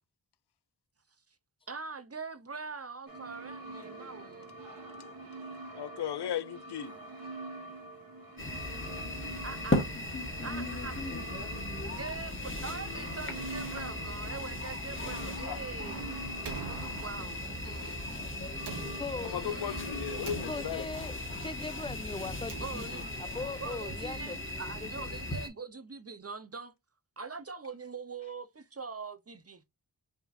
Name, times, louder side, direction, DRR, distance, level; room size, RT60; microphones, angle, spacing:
voice 1, 1.7-4.6 9.4-9.9 10.4-11.1 11.8-16.0 16.6-18.0 19.3-20.0 22.6-23.1 23.6-26.7 27.2-29.6, right 4 dB, 35° right, 0.8 m, -43 dB
sound 1, 3.1-21.3, right 2 dB, 55° right, 1.6 m, -46 dB
voice 2, 5.7-6.9 15.5-15.6 19.3-20.8, left 10 dB, 70° left, 0.6 m, -36 dB
sound 2, 8.4-25.5, left 1 dB, 30° left, 1.3 m, -37 dB
Slam, 16.4-17.5 18.5-19.5 20.2-21.1 22.2-23.2, right 5 dB, 70° right, 1.2 m, -45 dB
voice 3, 19.0-19.5 20.5-25.2, left 3 dB, 15° left, 0.4 m, -40 dB
5.7 x 3.0 x 2.5 m
wide cardioid pair, 60°, 42 cm